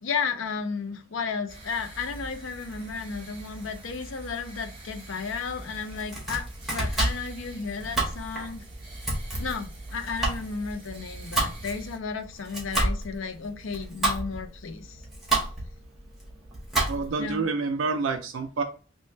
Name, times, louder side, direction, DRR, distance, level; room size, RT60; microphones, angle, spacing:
voice 1, 0.0-8.6 9.4-15.0 17.2-17.5, left 5 dB, 80° left, 0.5 m, -33 dB
sound 1, 1.5-12.0, right 2 dB, 25° right, 1.1 m, -44 dB
Domestic sounds home sounds, 5.9-17.3, right 2 dB, ahead, 1.5 m, -30 dB
voice 2, 16.9-18.6, right 4 dB, 80° right, 0.5 m, -28 dB
3.3 x 3.0 x 3.1 m
head